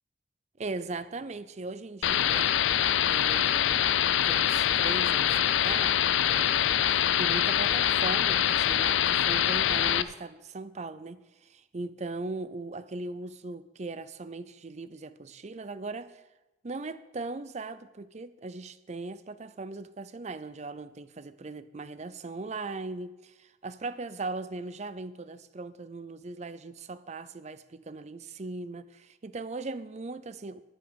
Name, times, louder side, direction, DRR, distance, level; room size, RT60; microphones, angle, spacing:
voice 1, 0.6-3.9 4.2-11.2 11.5-16.2 16.6-30.6, right 3 dB, 40° right, 0.5 m, -39 dB
sound 1, 2.0-10.0, left 10 dB, 90° left, 0.5 m, -24 dB
12.0 x 10.0 x 5.2 m
head